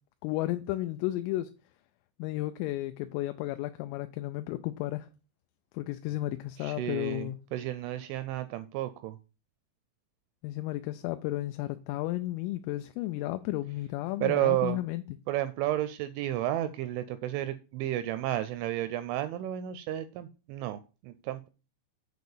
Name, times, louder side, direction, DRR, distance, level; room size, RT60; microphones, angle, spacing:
voice 1, 0.2-1.5 2.2-5.1 5.7-7.4 10.4-15.0, left 16 dB, 85° left, 3.1 m, -33 dB
voice 2, 6.6-9.2 14.2-14.8 15.3-21.5, right 13 dB, 85° right, 2.7 m, -32 dB
8.4 x 4.0 x 6.9 m
omnidirectional pair, 5.9 m